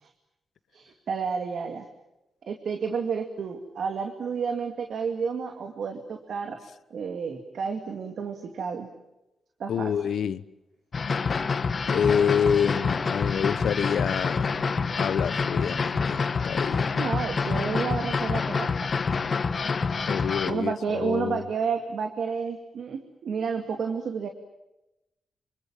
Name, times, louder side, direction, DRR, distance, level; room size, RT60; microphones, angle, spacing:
voice 1, 0.7-1.8 2.4-6.6 6.9-8.9 9.6-9.9 17.0-18.9 20.5-24.3, right 6 dB, 75° right, 2.4 m, -31 dB
voice 2, 9.7-10.4 11.9-14.5 15.0-17.1 20.1-21.4, left 8 dB, 85° left, 1.1 m, -27 dB
sound 1, 10.9-20.5, left 5 dB, 45° left, 1.7 m, -27 dB
27.0 x 26.0 x 7.5 m
cardioid pair, 100°, 0 cm